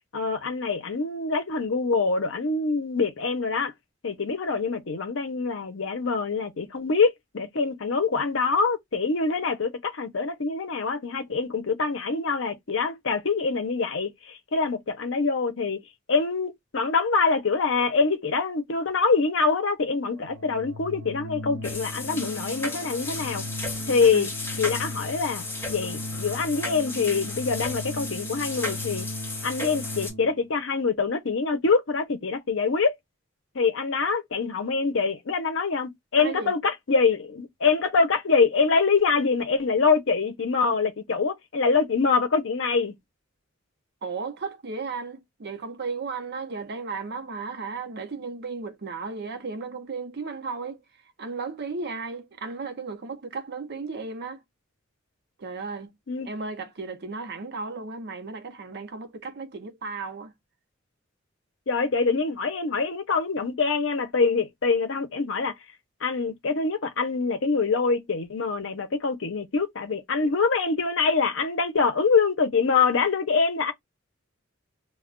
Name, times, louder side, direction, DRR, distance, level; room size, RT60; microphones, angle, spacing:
voice 1, 0.1-3.7 4.0-15.8 16.1-23.4 23.9-24.3 24.6-29.1 29.4-33.0 33.5-42.9 56.1-56.3 61.7-65.5 66.0-73.7, left 4 dB, 65° left, 0.7 m, -25 dB
Organ, 20.1-30.4, left 1 dB, 75° right, 0.9 m, -38 dB
sound 1, 21.6-30.1, left 2 dB, 10° left, 0.9 m, -35 dB
voice 2, 24.0-24.3 36.2-36.5 44.0-50.8 51.2-54.4 55.4-55.9 56.3-60.3, right 4 dB, 55° right, 0.6 m, -35 dB
2.3 x 2.1 x 3.6 m
head